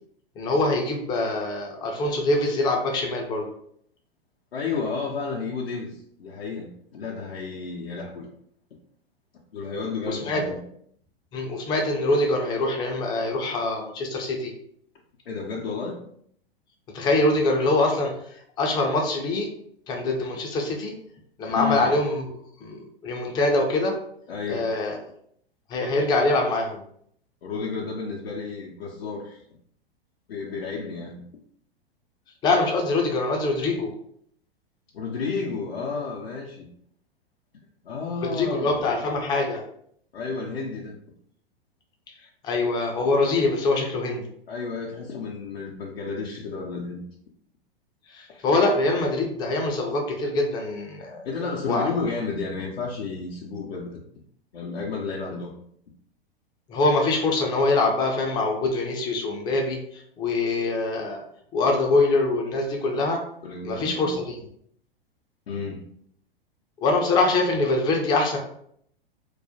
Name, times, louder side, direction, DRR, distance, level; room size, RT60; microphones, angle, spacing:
voice 1, 0.4-3.5 10.1-10.4 11.3-14.5 16.9-19.5 19.9-20.9 21.4-22.3 22.6-23.9 24.5-25.0 25.7-26.8 32.4-33.9 38.3-39.6 42.4-44.2 48.1-51.3 51.7-51.9 56.7-61.2 61.5-63.2 63.6-64.3 66.8-68.4, left 2 dB, 15° left, 1 dB, 0.3 m, -24 dB
voice 2, 4.5-8.3 9.5-10.6 15.3-16.0 21.5-21.9 24.3-24.7 27.4-29.4 30.3-31.2 34.9-36.7 37.8-38.8 40.1-41.0 44.5-47.0 48.3-48.4 51.2-53.9 54.5-55.5 63.4-64.1 65.5-65.9, left 4 dB, 80° left, -3 dB, 0.5 m, -32 dB
2.3 x 2.1 x 2.6 m, 0.67 s
figure-of-eight pair, 100°, 30 cm